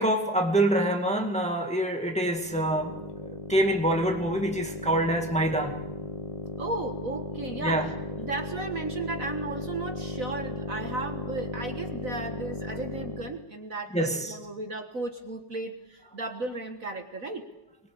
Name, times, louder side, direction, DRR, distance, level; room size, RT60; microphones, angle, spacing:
voice 1, 0.0-5.8 7.6-7.9 13.9-14.4, right 1 dB, 5° left, 3 dB, 1.8 m, -26 dB
sound 1, 2.3-13.5, left 2 dB, 25° left, 0.7 m, -36 dB
voice 2, 6.6-7.9 8.2-17.5, right 2 dB, 45° right, 5 dB, 1.8 m, -35 dB
23.5 x 21.5 x 8.5 m, 0.99 s
omnidirectional pair, 2.2 m